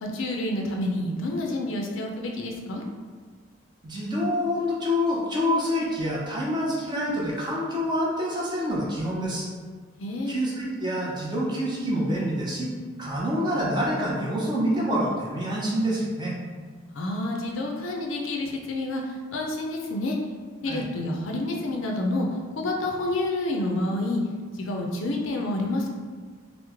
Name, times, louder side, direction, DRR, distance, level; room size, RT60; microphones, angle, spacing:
voice 1, 0.0-2.8 10.0-10.4 17.0-19.0 19.3-20.2 20.6-22.3 22.6-24.2 24.6-25.9, left 2 dB, 70° left, 1 dB, 0.4 m, -28 dB
voice 2, 3.8-9.5 10.3-12.7 13.0-16.4 20.7-20.8, equal, 20° right, -4 dB, 0.5 m, -27 dB
3.0 x 2.0 x 3.4 m, 1.5 s
head